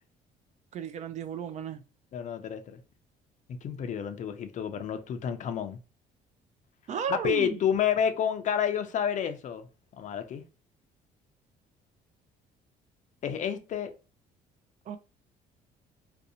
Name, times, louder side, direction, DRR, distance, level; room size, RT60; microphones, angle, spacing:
voice 1, 0.7-1.8 6.9-7.6 14.9-15.0, right 7 dB, 45° right, 0.4 m, -34 dB
voice 2, 2.1-2.8 3.6-5.8 7.2-9.7 10.0-10.4 13.2-13.9, left 8 dB, 45° left, 0.4 m, -29 dB
2.6 x 2.1 x 2.6 m
cardioid pair, 110°, 17 cm